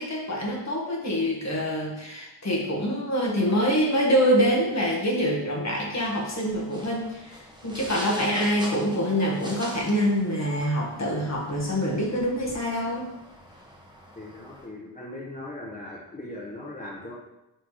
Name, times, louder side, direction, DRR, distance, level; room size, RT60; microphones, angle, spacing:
voice 1, 0.0-7.4 7.6-13.0, equal, 35° left, -2 dB, 1.5 m, -25 dB
sound 1, 6.0-14.7, equal, 10° right, 0.9 m, -43 dB
voice 2, 14.1-17.1, left 1 dB, 20° left, -4 dB, 0.7 m, -39 dB
6.0 x 3.4 x 4.8 m, 0.92 s
wide cardioid pair, 170°, 45 cm